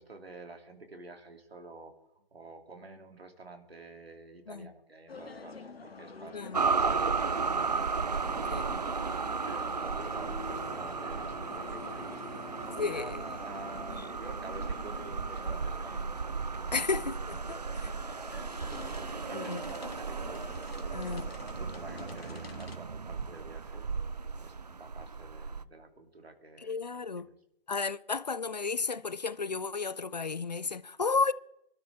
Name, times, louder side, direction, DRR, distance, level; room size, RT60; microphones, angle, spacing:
voice 1, 0.0-7.8 8.1-17.0 17.5-20.4 20.8-23.9 24.4-27.3, right 3 dB, 85° right, 2.8 m, -49 dB
sound 1, 5.1-22.8, left 4 dB, 85° left, 1.6 m, -47 dB
sound 2, 6.5-25.6, right 4 dB, 45° right, 0.4 m, -35 dB
voice 2, 12.8-13.2 16.7-17.6 19.3-19.6 20.9-21.3 26.6-27.3 27.7-31.3, left 4 dB, 45° left, 0.5 m, -32 dB
25.0 x 12.5 x 3.5 m
figure-of-eight pair, 165°, 30 cm